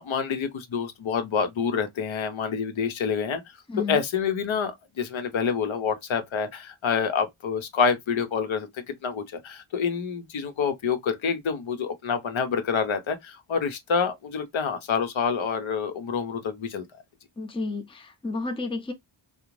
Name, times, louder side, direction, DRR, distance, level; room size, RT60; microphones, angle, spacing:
voice 1, 0.0-3.4 3.9-8.7 9.0-16.8, left 6 dB, 70° left, 0.7 m, -27 dB
voice 2, 3.7-4.0 17.4-18.9, left 3 dB, 10° left, 0.5 m, -31 dB
2.5 x 2.1 x 3.0 m
cardioid pair, 60°, 49 cm